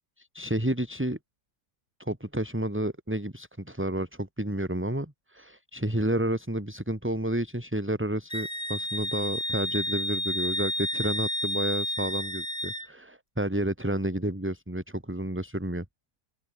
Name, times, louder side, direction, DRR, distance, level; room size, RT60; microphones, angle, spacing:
voice 1, 0.2-1.2 2.0-15.8, right 1 dB, 5° right, 2.8 m, -30 dB
Wind instrument woodwind instrument, 8.3-12.9, equal, 10° left, 6.9 m, -31 dB
open air
omnidirectional pair, 1.8 m